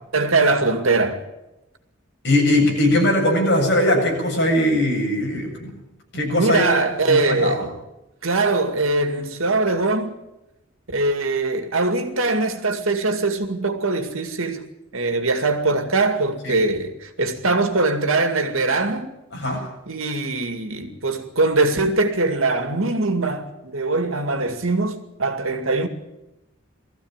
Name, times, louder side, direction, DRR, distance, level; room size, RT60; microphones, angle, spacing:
voice 1, 0.1-1.2 6.1-7.7 8.2-10.2 10.9-14.6 14.9-19.1 19.9-25.9, right 3 dB, 85° right, 2.3 m, -22 dB
voice 2, 2.2-5.7 6.1-6.7 7.1-7.7 16.4-16.6 19.3-19.7, left 1 dB, 60° left, 7.5 m, -20 dB
20.0 x 14.5 x 9.0 m
head